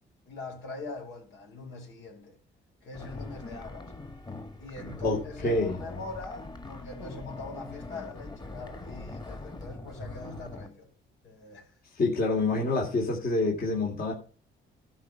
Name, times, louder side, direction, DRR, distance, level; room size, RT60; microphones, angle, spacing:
voice 1, 0.3-2.4 2.8-3.9 4.6-10.9 11.2-11.7, left 3 dB, 75° left, 5.0 m, -42 dB
sound 1, 2.9-10.7, left 2 dB, 20° left, 1.9 m, -42 dB
voice 2, 5.4-5.8 11.9-14.1, left 2 dB, 50° left, 3.0 m, -26 dB
12.0 x 4.9 x 5.8 m
cardioid pair, 90°, 20 cm